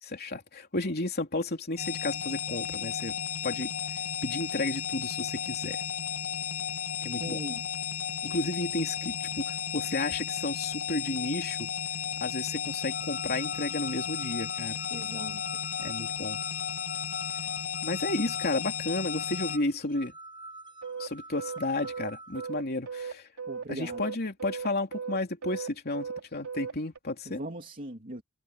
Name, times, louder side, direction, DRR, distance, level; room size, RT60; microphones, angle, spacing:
voice 1, 0.0-3.2 3.4-3.7 4.2-5.8 7.0-7.4 8.2-11.7 12.2-14.8 15.8-16.4 17.8-20.2 21.0-23.3 23.7-27.4, left 2 dB, 45° left, 3.1 m, -32 dB
sound 1, 1.8-19.6, left 8 dB, 80° left, 2.0 m, -34 dB
voice 2, 7.1-7.6 14.9-15.6 23.5-24.0 27.2-28.2, right 1 dB, 40° right, 2.9 m, -39 dB
sound 2, 12.7-22.5, right 2 dB, 25° right, 5.5 m, -47 dB
sound 3, 20.8-27.0, right 6 dB, 90° right, 4.2 m, -37 dB
head